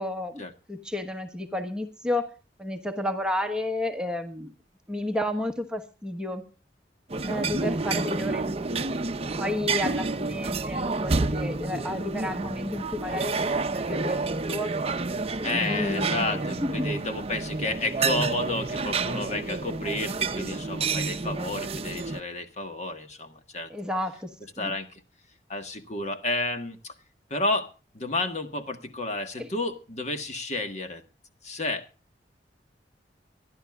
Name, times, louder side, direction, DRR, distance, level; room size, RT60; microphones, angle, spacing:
voice 1, 0.0-0.4 0.7-2.3 2.6-4.5 4.9-6.4 7.2-8.9 9.4-14.8 15.4-16.3 16.6-16.9 23.7-24.7 29.4-29.5, left 1 dB, 5° right, 1.3 m, -31 dB
sound 1, 7.1-22.2, right 3 dB, 35° right, 0.7 m, -29 dB
voice 2, 15.4-23.7 24.6-25.0 25.5-26.9 27.3-31.0 31.4-31.9, left 2 dB, 40° left, 1.6 m, -31 dB
25.5 x 11.5 x 2.4 m
head